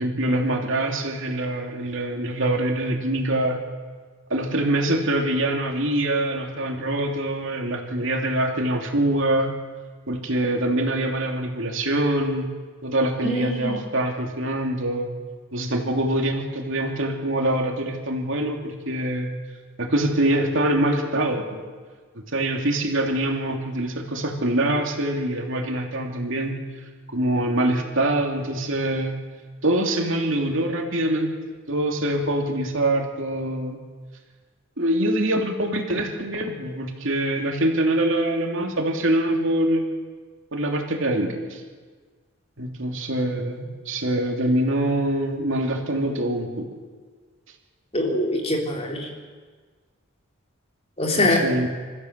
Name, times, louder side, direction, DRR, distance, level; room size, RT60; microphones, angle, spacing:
voice 1, 0.0-3.6 4.3-9.6 10.1-12.5 12.8-15.1 15.5-19.3 19.8-21.6 22.3-26.6 27.1-29.2 29.6-31.3 31.7-33.8 34.8-39.9 40.5-41.6 42.6-46.7 51.1-51.7, right 1 dB, 60° right, 2 dB, 3.1 m, -24 dB
voice 2, 13.2-13.8 47.9-49.1 51.0-51.4, left 1 dB, 30° left, 1 dB, 3.6 m, -23 dB
27.0 x 14.5 x 8.2 m, 1.5 s
head